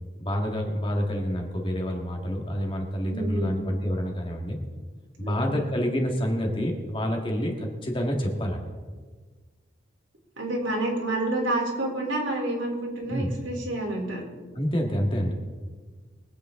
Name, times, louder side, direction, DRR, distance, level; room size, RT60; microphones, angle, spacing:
voice 1, 0.2-4.6 5.2-8.6 13.1-13.3 14.6-15.3, equal, 25° left, 1 dB, 1.8 m, -28 dB
voice 2, 3.1-3.6 5.2-5.6 10.4-14.3, right 2 dB, 90° right, -2 dB, 3.7 m, -29 dB
22.5 x 8.6 x 3.8 m, 1.5 s
head